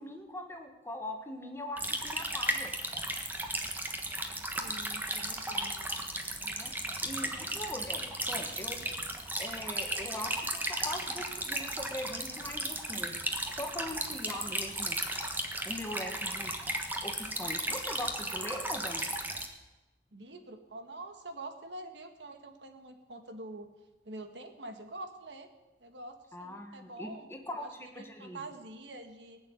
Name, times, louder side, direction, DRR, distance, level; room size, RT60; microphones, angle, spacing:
voice 1, 0.0-2.7 6.5-6.7 7.0-8.9 9.4-13.2 13.5-15.0 15.7-16.5 16.8-19.1 26.3-27.7 28.0-28.4, left 1 dB, 15° left, 3 dB, 1.7 m, -41 dB
sound 1, 1.8-19.5, right 1 dB, 10° right, 1.3 m, -35 dB
voice 2, 4.6-5.7 20.1-23.7 24.0-25.5 25.8-27.3 27.5-29.4, right 2 dB, 85° right, 7 dB, 1.6 m, -46 dB
19.0 x 7.1 x 9.6 m, 1.1 s
head